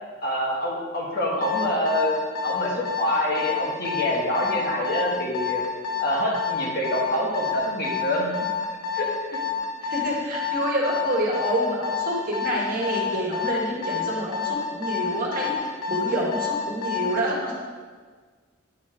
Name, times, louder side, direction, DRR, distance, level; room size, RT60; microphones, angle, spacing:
voice 1, 0.2-2.2 2.4-5.6 6.0-8.3 8.9-9.4, equal, 50° left, -3 dB, 1.5 m, -26 dB
Alarm, 1.4-17.2, left 7 dB, 80° left, 1.2 m, -28 dB
voice 2, 9.9-17.5, equal, 45° right, -3 dB, 1.5 m, -27 dB
9.5 x 4.2 x 4.9 m, 1.5 s
head